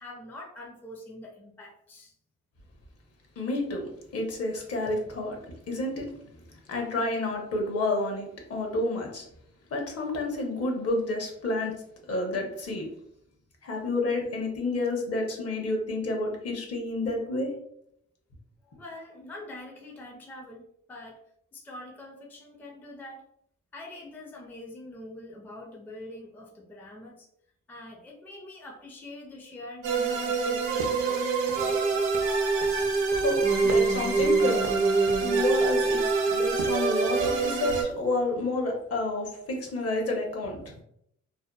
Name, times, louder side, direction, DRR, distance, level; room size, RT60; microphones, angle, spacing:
voice 1, 0.0-2.1 18.6-20.6 20.9-21.2 21.5-23.3 23.7-27.3 27.7-31.3, left 1 dB, 5° left, 0 dB, 0.4 m, -44 dB
voice 2, 3.4-5.4 5.7-6.2 6.7-9.2 9.7-11.8 12.1-12.9 13.6-17.5 33.1-34.7 35.2-40.7, left 2 dB, 55° left, 2 dB, 0.8 m, -30 dB
sound 1, 29.8-37.8, right 4 dB, 75° right, 0.8 m, -25 dB
sound 2, 30.6-38.1, right 4 dB, 55° right, 0.5 m, -42 dB
2.6 x 2.1 x 2.2 m, 0.72 s
cardioid pair, 90°, 30 cm